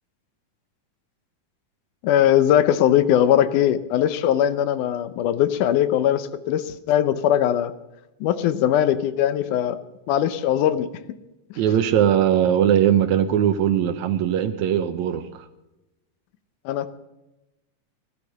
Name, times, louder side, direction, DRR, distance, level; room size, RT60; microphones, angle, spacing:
voice 1, 2.0-7.7 8.2-9.8 10.1-10.9 16.7-16.9, left 10 dB, 75° left, 13 dB, 2.2 m, -20 dB
voice 2, 11.6-15.5, right 10 dB, 75° right, 10 dB, 1.9 m, -20 dB
16.5 x 12.0 x 6.6 m, 0.99 s
omnidirectional pair, 3.8 m